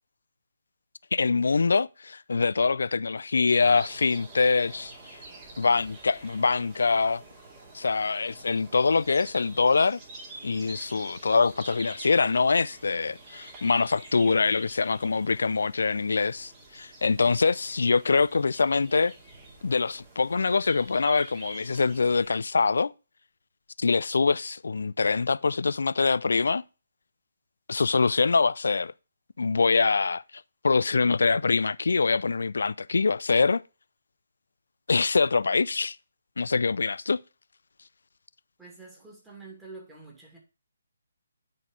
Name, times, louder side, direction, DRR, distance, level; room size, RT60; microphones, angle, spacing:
voice 1, 1.1-4.9 5.6-7.2 7.7-10.0 10.4-19.1 19.6-22.9 23.8-26.6 27.7-28.9 29.4-30.2 30.6-33.6 34.9-36.0 36.4-37.2, left 4 dB, 70° left, 0.3 m, -24 dB
sound 1, 3.5-22.4, right 2 dB, 25° right, 2.2 m, -47 dB
voice 2, 38.6-40.4, right 3 dB, 5° right, 2.3 m, -47 dB
9.5 x 4.2 x 5.0 m
figure-of-eight pair, 145°, 0 cm